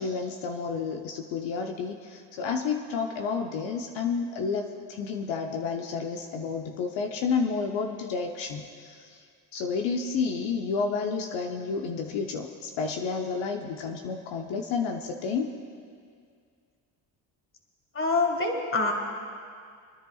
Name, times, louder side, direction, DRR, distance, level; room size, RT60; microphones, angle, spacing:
voice 1, 0.0-9.2 9.5-15.5, left 5 dB, 75° left, 2 dB, 0.9 m, -30 dB
voice 2, 17.9-18.9, left 3 dB, 25° left, 2 dB, 1.9 m, -25 dB
28.5 x 10.5 x 2.4 m, 2.2 s
cardioid pair, 85°, 46 cm